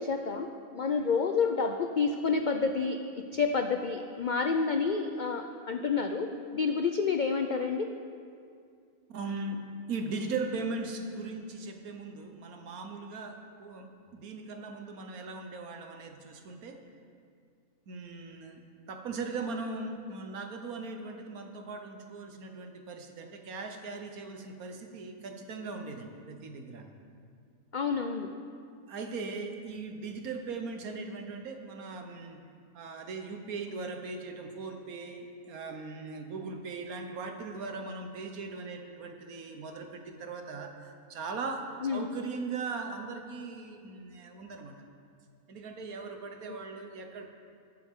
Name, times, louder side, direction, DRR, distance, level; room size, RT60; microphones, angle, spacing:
voice 1, 0.0-7.9 27.7-28.3 41.8-42.1 46.5-46.6, left 5 dB, 85° left, 6 dB, 0.4 m, -29 dB
voice 2, 9.1-9.6 9.9-16.8 17.9-18.6 18.9-26.9 28.9-32.4 32.7-44.8 45.5-47.3, right 3 dB, 85° right, 5 dB, 1.5 m, -39 dB
20.5 x 7.6 x 3.7 m, 2.3 s
omnidirectional pair, 1.5 m